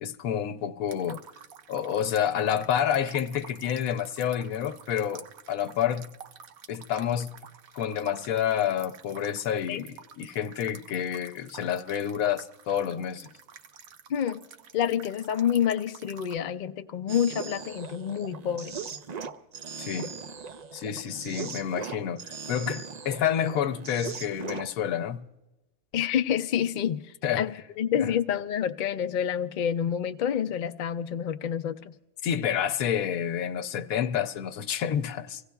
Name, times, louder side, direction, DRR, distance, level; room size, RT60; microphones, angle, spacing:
voice 1, 0.0-1.2 1.7-6.1 6.7-7.4 7.7-13.3 19.8-20.1 20.7-25.3 27.2-27.5 27.9-28.1 32.2-35.4, left 9 dB, 85° left, 1.1 m, -29 dB
sound 1, 0.9-16.4, right 8 dB, 85° right, 1.2 m, -49 dB
voice 2, 14.7-18.8 25.9-27.0 27.4-31.9, left 9 dB, 55° left, 0.5 m, -28 dB
sound 2, 17.1-24.7, right 5 dB, 70° right, 0.4 m, -39 dB
25.5 x 16.5 x 2.3 m
omnidirectional pair, 1.4 m